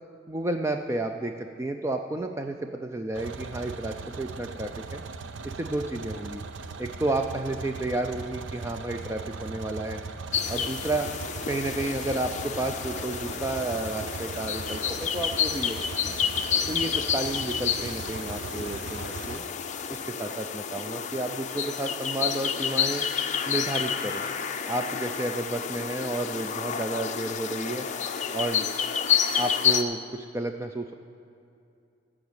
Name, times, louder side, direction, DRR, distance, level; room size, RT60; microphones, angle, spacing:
voice 1, 0.3-5.0 5.6-6.4 6.8-10.0 10.5-11.1 11.5-15.8 16.0-16.2 16.7-19.4 19.9-23.0 23.5-24.2 24.7-27.9 28.3-28.7 29.4-30.9, right 2 dB, 15° right, 5 dB, 0.4 m, -31 dB
sound 1, 3.1-19.4, right 4 dB, 75° right, 0.5 m, -39 dB
sound 2, 10.3-29.8, left 7 dB, 40° left, 0.5 m, -30 dB
14.5 x 5.0 x 8.7 m, 2.5 s
head